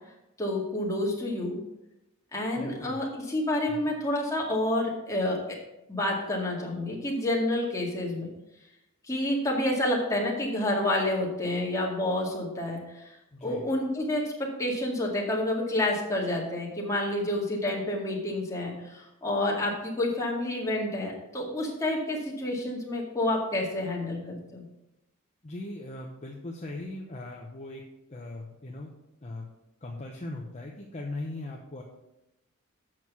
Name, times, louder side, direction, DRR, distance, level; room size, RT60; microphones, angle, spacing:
voice 1, 0.4-1.6 2.3-5.6 5.9-8.3 9.1-13.2 13.4-14.2 14.6-24.6, left 1 dB, 15° left, -3 dB, 2.1 m, -29 dB
voice 2, 2.5-3.0 3.7-3.9 13.3-13.6 25.4-27.8 28.1-28.9 29.2-29.5 29.8-31.8, left 2 dB, 30° left, -1 dB, 0.9 m, -39 dB
7.7 x 6.2 x 6.2 m, 0.92 s
head